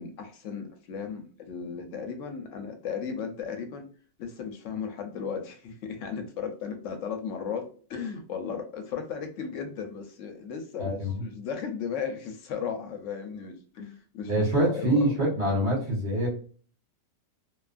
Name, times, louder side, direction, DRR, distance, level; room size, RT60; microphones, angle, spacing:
voice 1, 0.0-3.9 4.2-15.2, left 6 dB, 70° left, 6 dB, 0.9 m, -36 dB
voice 2, 10.8-11.1 14.3-16.3, right 1 dB, 55° right, -2 dB, 1.3 m, -25 dB
2.5 x 2.3 x 2.4 m, 0.42 s
omnidirectional pair, 1.4 m